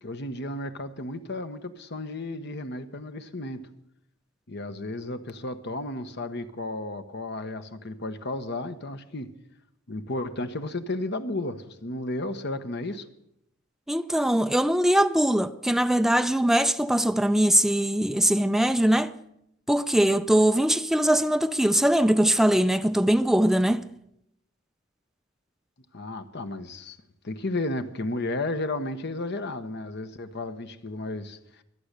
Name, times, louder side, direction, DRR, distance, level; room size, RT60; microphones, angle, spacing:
voice 1, 0.0-3.6 4.5-9.3 9.9-13.1 25.9-27.0 27.2-31.6, left 2 dB, 60° left, 1.2 m, -33 dB
voice 2, 13.9-19.1 19.7-23.9, right 1 dB, ahead, 0.5 m, -21 dB
23.5 x 8.8 x 6.7 m
head